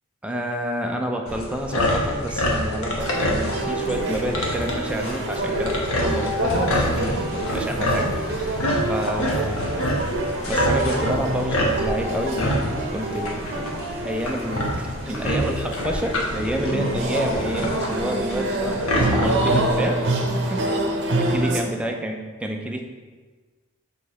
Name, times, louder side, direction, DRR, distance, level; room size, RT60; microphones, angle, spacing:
voice 1, 0.2-8.6 8.9-9.8 10.5-13.7 14.0-20.0 20.3-20.7 21.1-22.2 22.4-22.8, equal, 5° right, 2 dB, 0.5 m, -29 dB
sound 1, 1.3-19.8, equal, 75° left, 1.1 m, -27 dB
Istanbul Dervish Cafe music, 3.0-21.6, right 2 dB, 55° right, 0.8 m, -27 dB
sound 2, 6.5-20.1, right 1 dB, 25° left, 1.7 m, -47 dB
6.7 x 3.8 x 4.2 m, 1.4 s
head